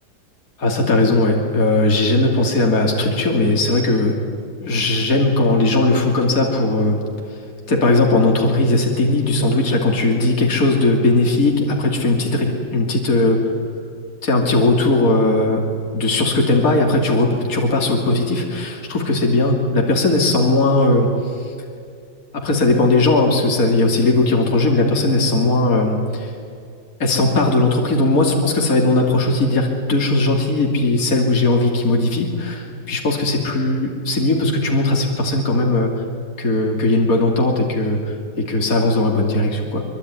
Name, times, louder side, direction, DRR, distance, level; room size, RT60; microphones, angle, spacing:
voice 1, 0.6-4.2 4.6-7.0 7.3-7.4 7.7-13.5 14.2-15.6 15.9-21.5 22.4-26.3 27.0-36.0 36.4-39.8, left 2 dB, 50° left, 0 dB, 3.2 m, -18 dB
24.0 x 24.0 x 9.7 m, 2.3 s
omnidirectional pair, 2.0 m